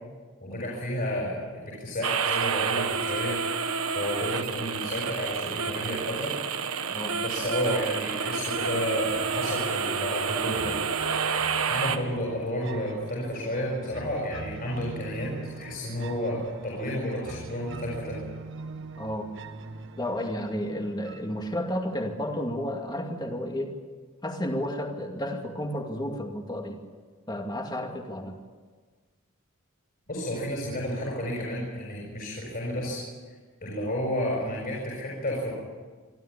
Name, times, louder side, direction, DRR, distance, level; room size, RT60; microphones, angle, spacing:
voice 1, 0.4-3.7 3.9-6.3 7.2-10.8 11.7-18.2 30.1-33.0 33.6-35.5, equal, 45° left, -4 dB, 6.9 m, -31 dB
sound 1, 2.0-12.0, right 6 dB, 85° right, 1.4 m, -29 dB
sound 2, 9.3-22.3, right 3 dB, 60° right, 1.3 m, -42 dB
voice 2, 19.0-19.3 20.0-23.8 24.2-26.8 27.3-28.3, equal, 20° left, 3 dB, 2.4 m, -32 dB
27.0 x 13.0 x 9.9 m, 1.5 s
head